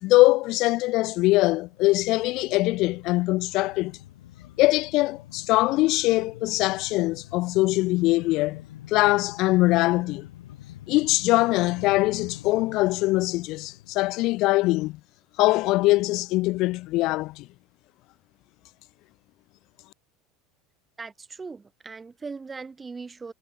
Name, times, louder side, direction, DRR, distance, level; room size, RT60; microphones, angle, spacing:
voice 1, 0.0-4.0 4.6-8.6 8.9-10.3 10.9-15.0 15.4-17.5, left 20 dB, 60° left, 0.8 m, -22 dB
sound 1, 1.6-14.8 15.2-15.3, left 13 dB, 80° left, 4.0 m, -46 dB
voice 2, 21.0-23.3, right 4 dB, 20° right, 5.7 m, -39 dB
hypercardioid pair, 80°, 0 cm